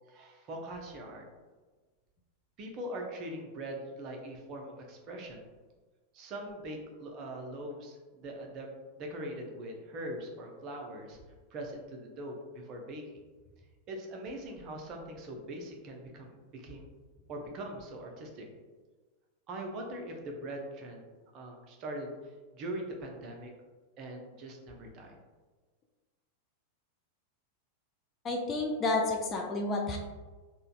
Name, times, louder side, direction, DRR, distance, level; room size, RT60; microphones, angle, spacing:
voice 1, 0.1-1.2 2.6-5.4 6.1-8.7 9.0-11.2 11.5-13.0 13.9-16.9 17.3-18.5 19.5-22.1 22.5-23.5 24.0-25.2, right 1 dB, 35° right, 1 dB, 0.6 m, -42 dB
voice 2, 28.2-30.0, left 2 dB, 25° left, 1 dB, 0.4 m, -30 dB
3.7 x 2.2 x 2.3 m, 1.3 s
figure-of-eight pair, 90°, 0 cm